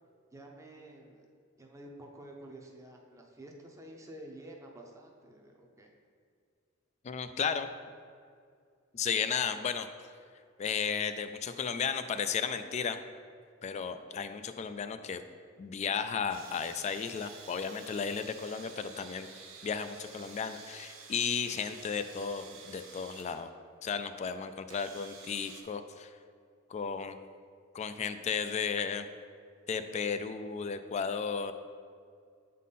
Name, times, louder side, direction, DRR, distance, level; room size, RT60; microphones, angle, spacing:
voice 1, 0.3-1.3 1.6-5.9, right 1 dB, 15° right, 0 dB, 0.6 m, -50 dB
voice 2, 7.0-7.7 8.9-9.9 10.6-13.0 13.6-15.2 15.6-19.3 19.6-23.5 23.8-26.1 26.7-27.2 27.7-29.1 29.7-31.5, left 6 dB, 35° left, 10 dB, 0.3 m, -34 dB
sound 1, 16.3-23.4 24.3-24.4 24.7-25.6, right 5 dB, 80° right, 0.7 m, -51 dB
8.3 x 3.7 x 4.1 m, 2.2 s
head